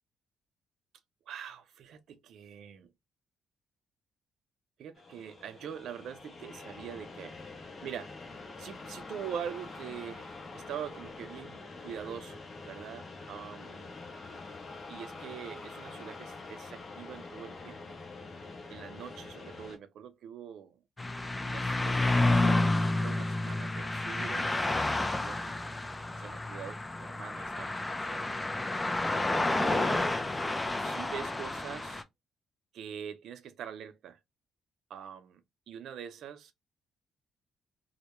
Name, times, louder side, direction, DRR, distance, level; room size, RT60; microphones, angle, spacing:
voice 1, 1.3-2.9 4.8-7.3 7.8-8.1 8.6-10.3 10.5-13.9 14.9-18.0 18.7-20.8 21.4-25.7 26.2-28.5 29.3-30.1 30.8-32.0 32.7-34.2 34.9-35.4 35.7-36.5, right 8 dB, 75° right, 0.4 m, -44 dB
sound 1, 5.0-19.8, left 3 dB, 45° left, 0.7 m, -46 dB
sound 2, 21.0-32.0, left 2 dB, 15° left, 0.3 m, -30 dB
2.2 x 2.0 x 2.9 m
cardioid pair, 90°, 0 cm